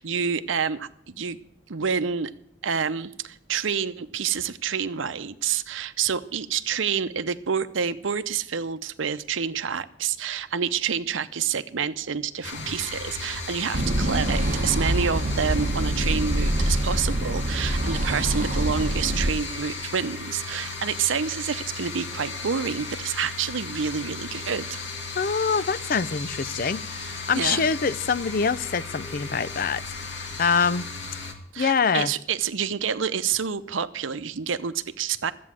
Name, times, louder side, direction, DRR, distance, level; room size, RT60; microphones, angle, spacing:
voice 1, 0.0-1.4 1.7-2.3 2.6-24.8 27.3-27.7 31.5-35.3, right 7 dB, 85° right, 0.7 m, -28 dB
sound 1, 12.4-31.3, left 4 dB, 65° left, 2.1 m, -36 dB
sound 2, 13.7-19.3, right 1 dB, 40° right, 1.1 m, -25 dB
voice 2, 25.1-30.9 31.6-32.1, left 5 dB, 45° left, 0.5 m, -25 dB
13.0 x 8.4 x 7.5 m
head